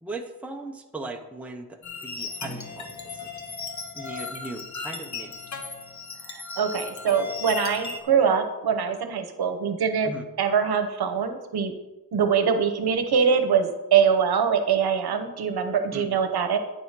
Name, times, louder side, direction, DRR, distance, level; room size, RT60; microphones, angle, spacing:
voice 1, 0.0-3.3 3.9-5.3 10.0-10.2 15.9-16.2, right 2 dB, 5° right, 2 dB, 0.6 m, -38 dB
sound 1, 1.8-8.0, left 4 dB, 45° left, 1.1 m, -36 dB
voice 2, 6.3-10.1 10.4-11.7 12.1-16.6, right 7 dB, 70° right, 7 dB, 1.0 m, -23 dB
9.3 x 4.8 x 5.7 m, 1.1 s
wide cardioid pair, 155°, 39 cm